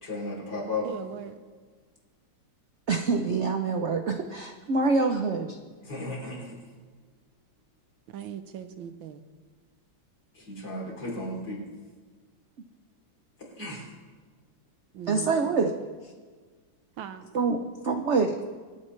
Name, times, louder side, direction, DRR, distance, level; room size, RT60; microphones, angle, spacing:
voice 1, 0.0-0.9 5.8-6.6 10.4-11.7 13.6-13.8, left 2 dB, 55° left, -3 dB, 3.8 m, -34 dB
voice 2, 0.8-1.4 8.1-9.2 14.9-15.3 17.0-17.3, right 9 dB, 85° right, 10 dB, 1.5 m, -39 dB
voice 3, 2.9-5.6 15.1-15.7 17.3-17.6 17.8-18.4, right 4 dB, 70° right, 5 dB, 0.6 m, -25 dB
25.0 x 8.8 x 3.2 m, 1.5 s
omnidirectional pair, 2.1 m